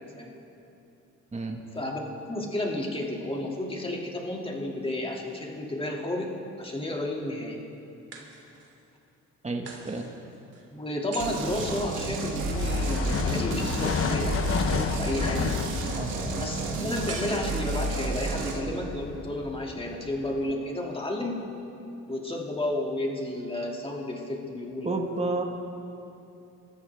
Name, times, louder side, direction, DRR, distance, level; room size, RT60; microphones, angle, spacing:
voice 1, 2.3-7.6 10.7-15.5 16.4-21.4 22.1-24.9, left 1 dB, 20° left, -1 dB, 2.7 m, -32 dB
sound 1, 5.3-6.1 8.1-8.9 9.6-12.5 17.1-18.2, right 4 dB, 55° right, 2.9 m, -45 dB
voice 2, 9.4-10.1 16.0-16.2 24.8-25.4, right 2 dB, 20° right, 2 dB, 1.7 m, -30 dB
sound 2, 11.2-18.6, right 3 dB, 85° right, 2.3 m, -31 dB
sound 3, 12.5-20.5, left 6 dB, 45° left, 0.9 m, -32 dB
27.0 x 13.5 x 3.6 m, 2.7 s
cardioid pair, 90°, 30 cm